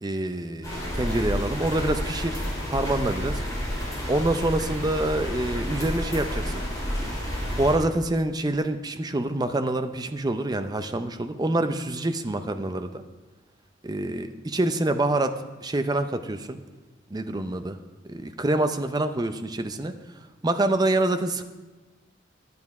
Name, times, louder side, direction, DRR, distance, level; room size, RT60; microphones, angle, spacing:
voice 1, 0.0-2.4 2.7-3.4 4.1-6.6 7.6-13.0 13.8-15.3 15.6-16.6 17.1-17.8 18.1-19.9 20.4-21.4, right 2 dB, 20° right, 8 dB, 0.6 m, -26 dB
sound 1, 0.6-7.7, equal, 20° left, 3.7 m, -30 dB
11.5 x 9.5 x 4.8 m, 1.2 s
head